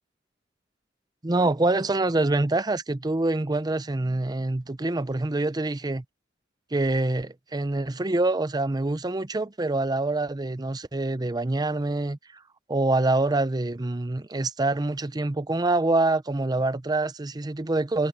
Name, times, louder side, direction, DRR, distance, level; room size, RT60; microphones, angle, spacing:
voice 1, 1.2-6.0 6.7-12.2 12.7-18.1, right 2 dB, 20° right, 0.6 m, -25 dB
head